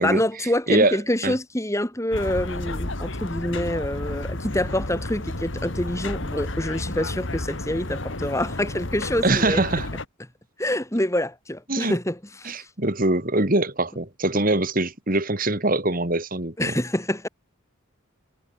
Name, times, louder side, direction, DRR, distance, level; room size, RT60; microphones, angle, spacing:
voice 1, 0.0-9.6 10.6-12.7 16.6-17.3, left 1 dB, 15° left, 2.3 m, -26 dB
sound 1, 2.1-10.1, left 2 dB, 60° left, 2.4 m, -31 dB
voice 2, 9.2-9.9 11.7-12.0 12.4-16.7, right 2 dB, 40° right, 2.4 m, -23 dB
head